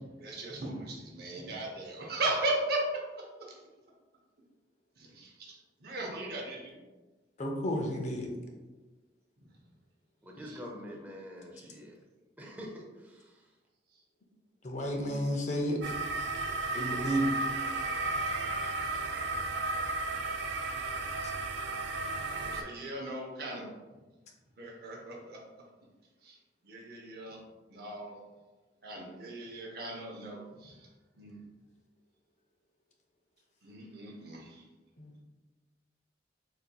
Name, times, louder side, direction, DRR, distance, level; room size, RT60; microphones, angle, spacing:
voice 1, 0.2-3.0 5.0-6.8 10.5-10.6 16.3-16.4 18.9-19.0 22.4-23.7 24.6-25.4 26.2-26.4 26.6-27.4 27.7-28.2 28.8-30.9 31.2-31.4 33.6-34.6, right 2 dB, 60° right, -1 dB, 0.7 m, -37 dB
voice 2, 7.4-8.3 14.6-15.8 16.7-17.3 35.0-35.1, equal, 40° left, 0 dB, 0.5 m, -31 dB
voice 3, 10.2-12.0 12.4-13.5, equal, 10° right, -2 dB, 0.5 m, -46 dB
sound 1, 15.8-22.6, right 2 dB, 75° right, 0.3 m, -34 dB
4.0 x 2.8 x 2.3 m, 1.2 s
head